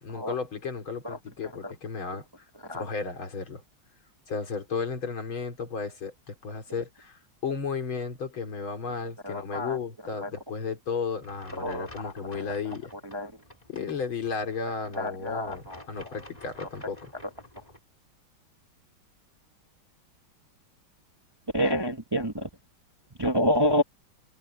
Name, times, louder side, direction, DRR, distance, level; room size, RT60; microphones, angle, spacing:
voice 1, 0.0-2.5 2.7-3.6 4.3-12.9 13.7-17.1, left 5 dB, 80° left, 4.1 m, -34 dB
voice 2, 9.2-9.8 10.2-10.3 11.6-12.1 12.4-12.5 13.1-13.3 14.9-15.8 21.5-22.5 23.2-23.8, equal, 20° right, 0.7 m, -28 dB
sound 1, 11.2-17.8, left 1 dB, 20° left, 4.2 m, -50 dB
open air
omnidirectional pair, 2.2 m